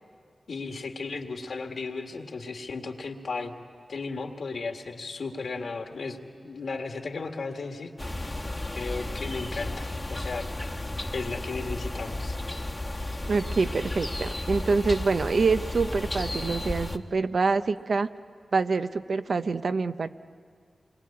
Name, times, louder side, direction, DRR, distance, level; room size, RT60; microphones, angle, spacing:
voice 1, 0.5-3.5 3.9-6.2 6.4-7.9 8.7-10.5 11.1-12.4, left 4 dB, 80° left, 4 dB, 1.9 m, -35 dB
sound 1, 8.0-17.0, left 1 dB, 20° left, 1.1 m, -33 dB
voice 2, 13.3-18.1 18.5-20.1, right 4 dB, 65° right, 11 dB, 0.6 m, -26 dB
28.0 x 22.0 x 8.7 m, 2.1 s
wide cardioid pair, 105°, 0 cm